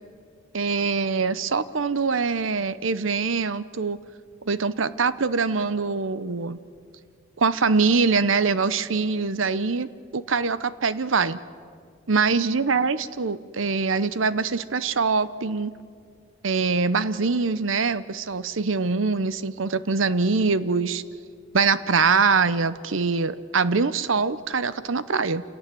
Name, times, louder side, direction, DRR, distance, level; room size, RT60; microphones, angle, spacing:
voice 1, 0.5-4.0 4.5-6.6 7.4-11.4 12.1-15.7 16.4-21.0 21.5-25.4, right 4 dB, 90° right, 15 dB, 0.9 m, -23 dB
27.5 x 17.5 x 9.2 m, 2.2 s
head